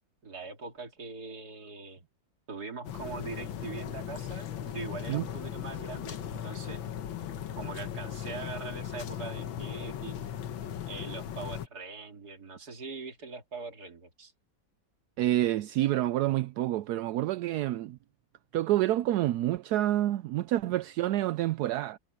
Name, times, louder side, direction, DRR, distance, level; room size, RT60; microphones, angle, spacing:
voice 1, 0.2-2.0 2.5-6.8 7.6-10.2 10.9-14.3, right 4 dB, 55° right, 3.0 m, -42 dB
sound 1, 2.8-11.7, left 9 dB, 85° left, 1.9 m, -38 dB
voice 2, 15.2-18.0 18.5-22.0, right 14 dB, 75° right, 0.9 m, -28 dB
omnidirectional pair, 2.1 m